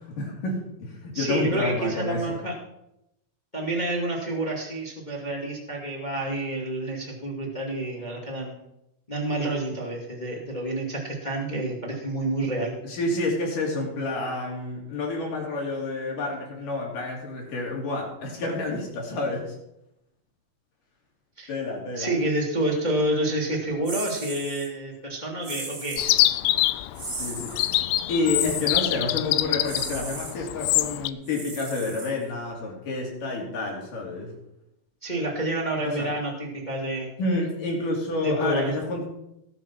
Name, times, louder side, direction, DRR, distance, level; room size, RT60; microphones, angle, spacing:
voice 1, 0.0-2.4 12.8-19.6 21.5-22.1 27.2-27.5 28.1-34.3 35.8-36.1 37.2-39.1, left 2 dB, 55° left, -1 dB, 4.2 m, -29 dB
voice 2, 1.1-2.5 3.5-8.6 9.1-12.7 21.4-21.5 21.9-26.2 35.0-37.1 38.2-38.7, right 1 dB, 15° left, -2 dB, 1.5 m, -28 dB
sound 1, 23.8-24.7 25.4-26.1 26.9-27.7 28.3-28.8 29.6-30.3 31.2-32.4, right 2 dB, 25° right, 1.7 m, -37 dB
Chirp tweet, 26.0-31.1, left 15 dB, 80° left, 2.4 m, -25 dB
19.5 x 6.6 x 6.0 m, 0.85 s
omnidirectional pair, 4.9 m